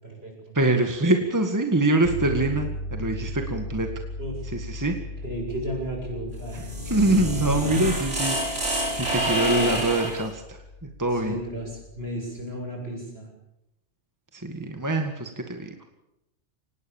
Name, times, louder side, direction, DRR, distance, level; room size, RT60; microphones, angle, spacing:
voice 1, 0.0-0.5 4.2-4.4 5.2-6.6 11.1-13.3, right 1 dB, 60° right, 1 dB, 7.8 m, -34 dB
voice 2, 0.5-3.9 4.5-4.9 6.5-11.4 14.3-15.7, right 2 dB, 15° right, 4 dB, 1.9 m, -25 dB
sound 1, 2.0-12.2, left 1 dB, 80° left, 2.7 m, -37 dB
sound 2, 6.4-10.2, equal, 85° right, 4.9 m, -27 dB
24.5 x 19.5 x 7.2 m, 0.89 s
omnidirectional pair, 1.2 m